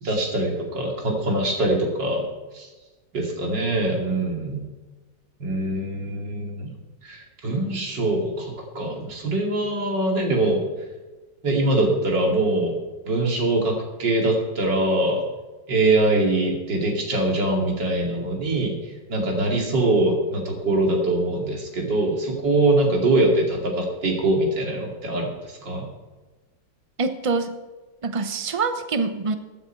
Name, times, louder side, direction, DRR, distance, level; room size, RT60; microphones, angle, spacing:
voice 1, 0.0-2.2 2.5-2.7 3.1-4.6 5.4-6.7 7.0-10.6 11.4-12.8 13.0-15.2 15.7-18.8 19.1-25.9, right 2 dB, 70° right, 0 dB, 3.3 m, -23 dB
voice 2, 27.0-27.5 28.0-29.3, right 4 dB, 40° right, 8 dB, 0.4 m, -25 dB
15.5 x 9.4 x 4.6 m, 1.2 s
omnidirectional pair, 2.0 m